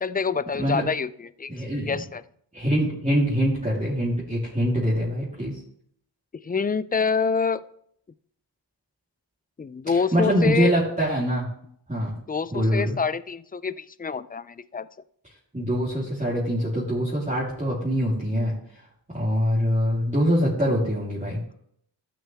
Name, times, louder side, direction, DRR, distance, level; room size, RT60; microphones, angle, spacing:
voice 1, 0.0-1.1 1.4-1.5 1.9-2.2 6.4-7.6 9.6-10.7 12.3-14.9, left 5 dB, 20° left, 16 dB, 0.4 m, -26 dB
voice 2, 1.5-2.0 2.5-5.6 9.9-11.5 11.9-12.2 12.5-13.0 15.5-18.5 19.1-21.4, equal, 15° right, -8 dB, 3.4 m, -24 dB
14.0 x 6.2 x 3.5 m, 0.68 s
cardioid pair, 60°, 45 cm